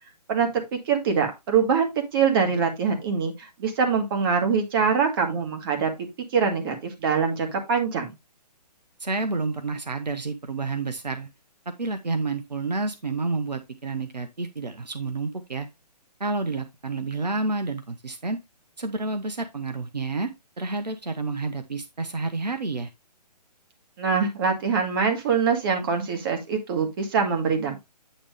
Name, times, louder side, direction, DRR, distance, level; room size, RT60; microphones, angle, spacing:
voice 1, 0.3-6.1 6.3-8.1 24.0-27.8, right 6 dB, 35° right, 4 dB, 1.8 m, -24 dB
voice 2, 9.0-11.3 11.7-15.7 16.2-18.4 18.8-20.3 20.6-22.9, right 3 dB, 75° right, 7 dB, 1.1 m, -29 dB
8.9 x 3.4 x 4.9 m, 0.22 s
figure-of-eight pair, 135°, 21 cm